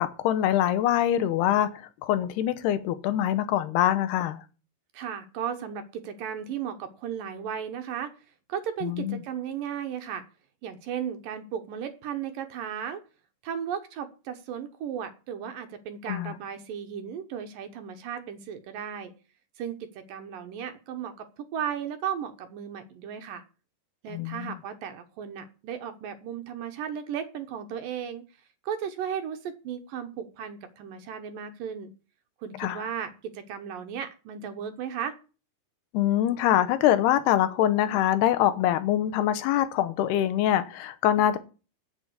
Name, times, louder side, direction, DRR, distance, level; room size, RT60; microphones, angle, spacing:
voice 1, 0.0-4.4 8.8-9.2 16.1-16.3 24.1-24.5 32.6-32.8 35.9-41.4, left 12 dB, 85° left, 2.8 m, -24 dB
voice 2, 4.9-8.1 8.5-10.2 10.6-13.0 13.4-19.1 19.6-23.4 24.0-28.2 28.6-31.9 32.4-35.2, right 8 dB, 70° right, 2.4 m, -35 dB
8.8 x 7.3 x 7.9 m
omnidirectional pair, 4.7 m